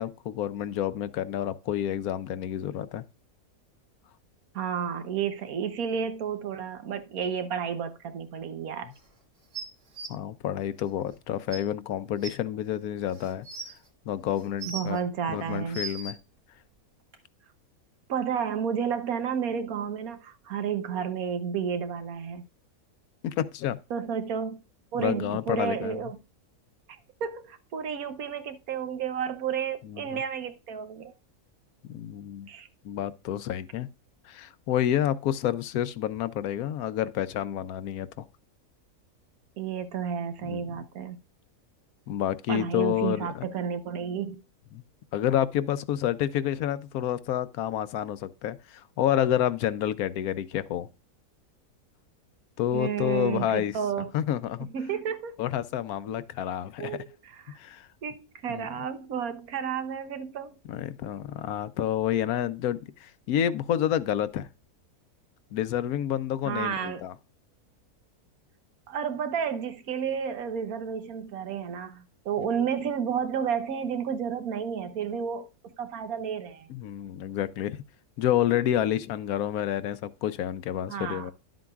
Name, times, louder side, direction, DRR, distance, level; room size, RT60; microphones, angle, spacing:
voice 1, 0.0-3.0 10.1-13.5 14.1-15.0 15.3-16.2 23.2-23.8 25.0-26.0 29.8-30.2 31.8-32.5 32.8-33.9 34.3-38.2 40.4-40.6 42.1-43.4 44.7-44.8 45.1-50.9 52.6-53.8 54.1-54.7 55.4-57.0 57.6-57.9 58.5-58.7 60.7-64.5 65.5-67.1 76.7-77.8 78.2-81.3, left 11 dB, 75° left, 1.1 m, -29 dB
voice 2, 4.5-8.9 14.7-15.8 18.1-22.4 23.9-24.6 24.9-26.2 27.2-31.1 32.5-32.7 39.6-41.2 42.5-44.4 52.7-54.1 54.6-55.4 56.8-57.6 58.0-60.5 66.4-67.1 68.9-76.7 80.9-81.3, right 7 dB, 70° right, 1.3 m, -31 dB
sound 1, 9.5-10.1 11.1-11.2 11.5-11.6 12.2-12.3 13.1-13.7 14.4-15.0 15.5-16.1 17.1-17.2, right 4 dB, 55° right, 1.9 m, -37 dB
11.5 x 7.7 x 2.4 m
omnidirectional pair, 1.6 m